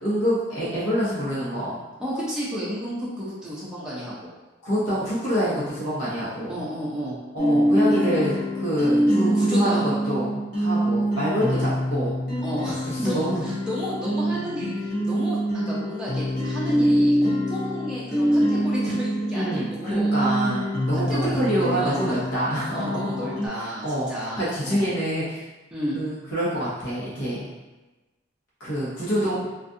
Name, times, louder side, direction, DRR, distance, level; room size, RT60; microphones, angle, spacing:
voice 1, 0.0-1.8 4.6-6.6 7.3-12.1 12.9-13.4 19.3-23.3 23.6-24.1 24.3-25.4 25.9-27.4 28.6-29.4, equal, 85° left, -9 dB, 0.9 m, -26 dB
voice 2, 2.0-4.3 6.5-7.2 9.3-10.0 10.7-11.0 12.4-20.2 20.9-22.2 22.7-24.9 25.7-26.0, equal, 5° right, -8 dB, 0.5 m, -32 dB
sound 1, 7.4-23.5, equal, 50° left, 0.9 m, -25 dB
2.4 x 2.3 x 2.6 m, 1.1 s
head